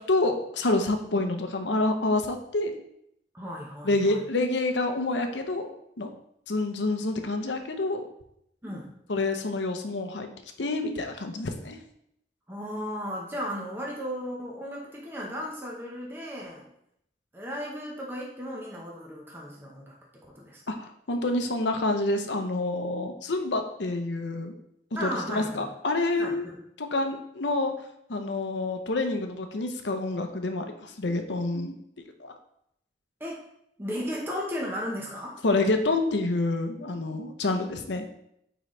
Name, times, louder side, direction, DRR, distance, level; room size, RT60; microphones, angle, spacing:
voice 1, 0.1-2.8 3.8-6.1 6.5-8.1 9.1-10.3 10.6-11.8 20.7-24.6 25.0-26.5 26.8-27.7 28.1-31.7 32.2-32.3 35.4-38.0, left 2 dB, 90° left, 6 dB, 0.8 m, -28 dB
voice 2, 3.3-4.2 8.6-8.9 12.5-16.7 17.3-20.0 20.3-20.6 25.0-25.7 26.2-26.6 33.2-33.4 33.8-35.4, equal, 10° right, -3 dB, 0.9 m, -35 dB
9.1 x 4.0 x 3.2 m, 0.75 s
head